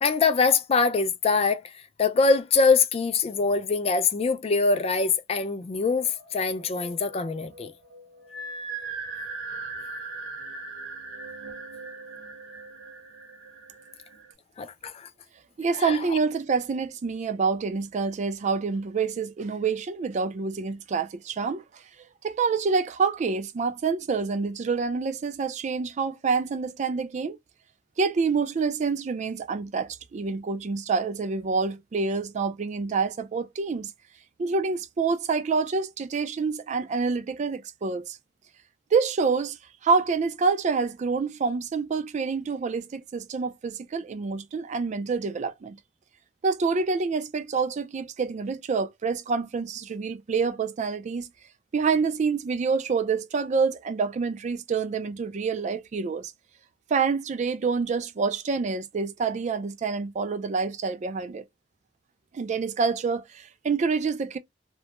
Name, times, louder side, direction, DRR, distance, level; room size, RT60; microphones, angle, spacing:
voice 1, 0.0-1.6 2.0-7.7 14.6-15.1 15.8-16.0, left 4 dB, 35° left, 0.3 m, -23 dB
sound 1, 6.0-14.3, right 3 dB, 85° right, 0.6 m, -39 dB
voice 2, 15.6-21.8 22.2-27.4 28.0-33.9 34.4-38.2 38.9-39.6 39.8-45.8 46.4-51.3 51.7-56.3 56.9-61.4 62.3-64.4, right 5 dB, 40° right, 0.3 m, -27 dB
2.2 x 2.0 x 2.9 m
head